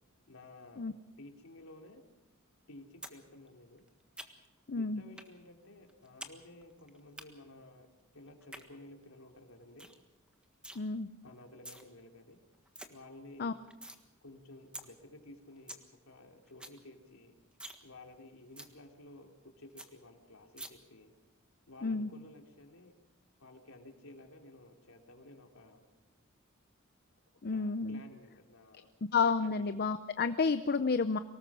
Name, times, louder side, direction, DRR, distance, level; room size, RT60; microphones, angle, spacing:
voice 1, 0.3-0.9 1.2-2.0 2.7-3.8 4.7-9.9 11.2-12.4 12.9-13.5 14.2-15.8 16.0-17.4 17.8-21.1 21.7-22.9 23.4-25.8 27.5-28.9 29.4-29.6, left 2 dB, 90° left, 2 dB, 3.0 m, -54 dB
sound 1, 3.0-3.2 3.5-4.6 5.2-5.3 5.6-6.3 6.6-7.2 8.3-8.6 9.1-9.2 9.5-9.6 9.8-10.0 10.3-10.8 11.4-11.8 12.2-12.3 12.5-12.9 13.3-14.0 14.4-14.5 14.7-14.8 15.2-15.3 15.5-15.8 16.2-16.3 16.5-16.8 17.1-17.2 17.5-17.8 18.1-18.2 18.6-18.7 19.1-19.2 19.4-19.5 19.8-19.9 20.6-20.7, right 1 dB, 5° right, 1.5 m, -47 dB
voice 2, 4.7-5.0 10.8-11.1 13.4-13.5 21.8-22.1 27.4-28.0 29.1-31.2, left 4 dB, 50° left, 12 dB, 0.6 m, -30 dB
24.0 x 19.0 x 6.2 m, 1.1 s
head